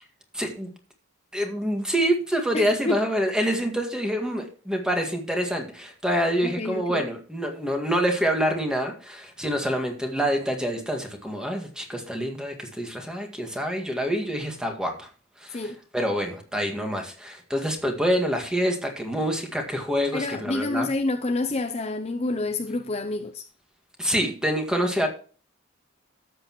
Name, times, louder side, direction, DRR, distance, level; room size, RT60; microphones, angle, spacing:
voice 1, 0.3-0.7 1.3-15.1 15.4-20.9 24.0-25.1, equal, 5° right, 1.9 m, -26 dB
voice 2, 2.5-3.0 6.4-7.0 15.5-15.8 20.1-23.5, left 2 dB, 30° left, 0.6 m, -28 dB
13.0 x 8.2 x 3.1 m
head